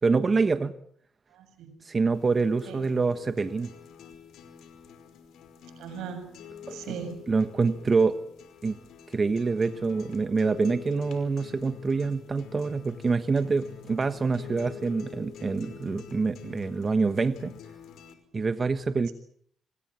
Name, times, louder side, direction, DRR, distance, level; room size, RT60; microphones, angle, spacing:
voice 1, 0.0-0.7 1.8-3.7 6.7-6.8 7.3-8.2 8.6-8.8 9.1-17.5 18.3-19.1, right 4 dB, 30° right, 10 dB, 1.4 m, -26 dB
voice 2, 1.3-1.8 2.6-2.9 5.8-6.3 6.7-7.2, right 7 dB, 85° right, 9 dB, 7.5 m, -39 dB
sound 1, 2.1-18.1, left 8 dB, 80° left, 5.4 m, -47 dB
27.5 x 24.0 x 7.6 m, 0.65 s
cardioid pair, 90°, 0 cm